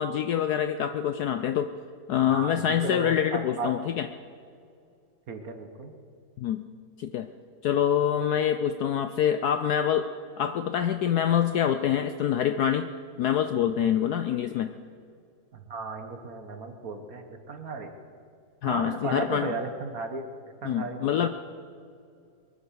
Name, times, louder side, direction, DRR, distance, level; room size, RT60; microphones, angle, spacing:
voice 1, 0.0-1.7 2.1-4.1 6.4-6.7 7.0-7.3 7.6-10.1 10.4-12.9 13.2-14.8 18.6-19.5 20.6-21.3, left 9 dB, 70° left, 9 dB, 1.0 m, -25 dB
voice 2, 2.2-3.7 5.3-5.9 15.5-17.9 18.6-20.2 20.6-21.3, right 3 dB, 50° right, 6 dB, 1.5 m, -35 dB
22.5 x 9.3 x 7.0 m, 2.3 s
omnidirectional pair, 2.1 m